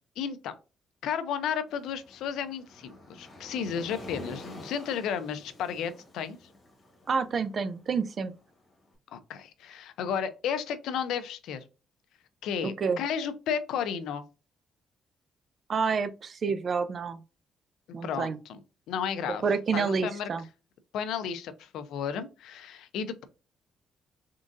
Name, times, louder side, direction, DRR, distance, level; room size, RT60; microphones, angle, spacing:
voice 1, 0.2-0.5 1.0-6.4 9.1-11.6 12.4-14.2 18.0-18.6 18.9-19.4 19.7-20.3 20.9-23.2, left 7 dB, 85° left, 0.5 m, -33 dB
Waves surf, 1.7-8.8, left 1 dB, 25° left, 1.6 m, -48 dB
voice 2, 7.1-8.3 12.6-13.0 15.7-17.2 17.9-18.4 19.4-20.4, right 5 dB, 40° right, 0.4 m, -28 dB
3.8 x 3.7 x 2.5 m
cardioid pair, 145°, 0 cm